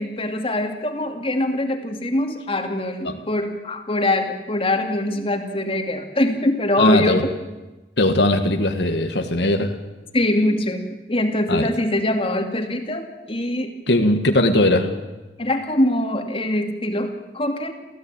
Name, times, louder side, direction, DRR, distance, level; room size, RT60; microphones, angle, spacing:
voice 1, 0.0-7.2 10.1-13.7 15.4-17.7, left 1 dB, 30° left, 5 dB, 2.5 m, -23 dB
voice 2, 6.8-7.2 8.0-9.8 11.5-11.7 13.9-15.0, left 1 dB, 65° left, 6 dB, 1.8 m, -19 dB
28.5 x 16.0 x 9.1 m, 1.1 s
head